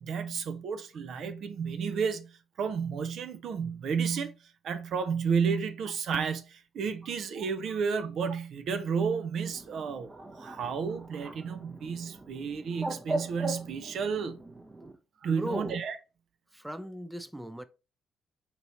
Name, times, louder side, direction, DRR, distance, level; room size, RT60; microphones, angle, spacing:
voice 1, 0.0-4.3 4.6-10.1 10.4-14.4 15.2-16.0, right 6 dB, 60° right, 0.5 m, -32 dB
Bird, 9.4-14.9, right 2 dB, 30° right, 0.8 m, -39 dB
voice 2, 15.3-15.8 16.5-17.6, right 1 dB, 5° right, 0.4 m, -37 dB
5.2 x 2.9 x 2.9 m
hypercardioid pair, 45°, 0 cm